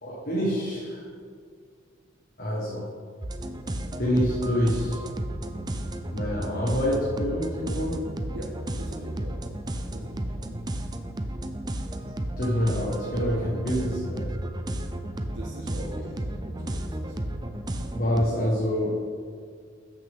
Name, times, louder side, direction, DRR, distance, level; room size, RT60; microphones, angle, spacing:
voice 1, 0.0-1.1 2.4-2.8 4.0-5.0 6.1-8.0 12.4-14.3 17.9-19.0, equal, 50° left, -5 dB, 1.5 m, -26 dB
sound 1, 3.2-18.3, right 1 dB, 20° right, 0.5 m, -33 dB
voice 2, 8.3-9.4 9.9-10.5 15.3-17.5, right 1 dB, 85° right, -5 dB, 1.4 m, -43 dB
13.5 x 6.7 x 3.7 m, 2.1 s
head